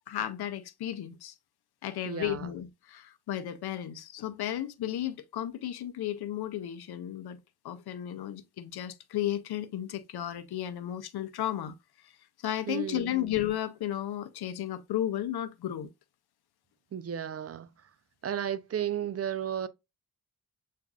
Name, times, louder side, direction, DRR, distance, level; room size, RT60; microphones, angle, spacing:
voice 1, 0.1-1.3 1.8-7.4 7.6-11.7 12.4-15.9, left 12 dB, 75° left, 0.6 m, -34 dB
voice 2, 2.0-2.5 12.7-13.2 16.9-17.7 18.2-19.7, right 9 dB, 40° right, 0.5 m, -33 dB
6.9 x 2.5 x 2.3 m
cardioid pair, 55°, 38 cm